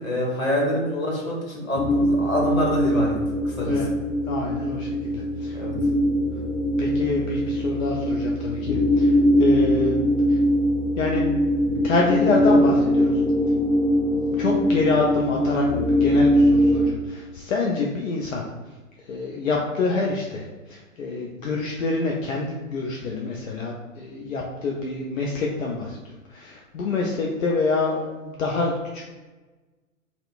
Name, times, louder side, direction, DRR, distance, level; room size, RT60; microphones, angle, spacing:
voice 1, 0.0-3.2 3.4-3.7 5.5-5.7, equal, 85° left, -3 dB, 1.1 m, -25 dB
sound 1, 1.8-16.9, equal, 10° left, 0.4 m, -22 dB
voice 2, 4.3-5.6 6.8-10.0 10.3-10.4 11.0-11.2 11.8-13.1 14.1-18.4 19.0-26.0 26.3-29.1, left 3 dB, 70° left, -1 dB, 0.5 m, -26 dB
2.8 x 2.0 x 2.3 m, 1.2 s
figure-of-eight pair, 120°, 41 cm